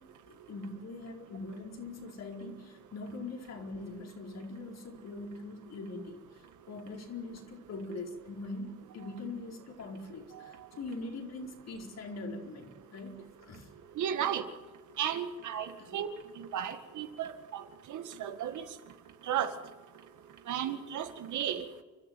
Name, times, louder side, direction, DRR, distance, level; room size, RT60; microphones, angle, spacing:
voice 1, 0.3-13.7 15.8-16.0, left 2 dB, 60° left, 2 dB, 4.6 m, -42 dB
voice 2, 14.0-14.4 15.0-17.6 17.9-18.6 19.3-19.5 20.5-21.6, right 9 dB, 75° right, 8 dB, 2.0 m, -34 dB
29.5 x 12.0 x 9.2 m, 1.3 s
cardioid pair, 90°, 30 cm